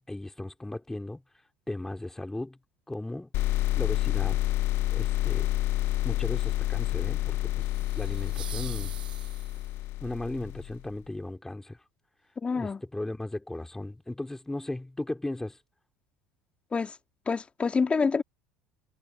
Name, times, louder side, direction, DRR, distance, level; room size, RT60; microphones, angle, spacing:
voice 1, 0.1-1.2 1.7-2.6 2.9-3.3 3.7-4.4 4.9-5.5 6.0-7.7 7.9-9.0 10.0-11.8 12.5-15.6, left 2 dB, 10° left, 4.4 m, -36 dB
sound 1, 3.3-10.9, left 16 dB, 55° left, 1.0 m, -29 dB
sound 2, 7.6-9.8, right 11 dB, 85° right, 7.6 m, -45 dB
voice 2, 12.4-12.8 16.7-16.9 17.3-18.2, left 5 dB, 25° left, 2.5 m, -27 dB
hypercardioid pair, 70°, 5 cm